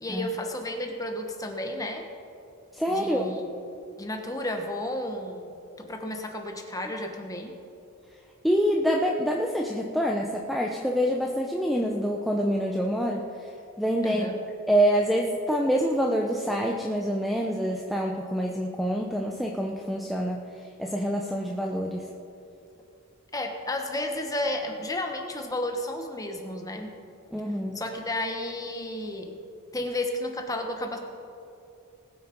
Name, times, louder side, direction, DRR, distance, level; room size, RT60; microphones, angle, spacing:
voice 1, 0.0-2.1 2.9-3.5 4.0-7.6 14.0-14.4 23.3-27.0 27.7-29.4 29.7-31.0, left 1 dB, 15° left, 3 dB, 1.2 m, -32 dB
voice 2, 2.7-3.3 8.4-13.3 13.8-14.3 14.7-20.4 20.8-22.1 27.3-27.8, equal, ahead, 0 dB, 0.6 m, -26 dB
19.5 x 9.1 x 4.5 m, 2.6 s
head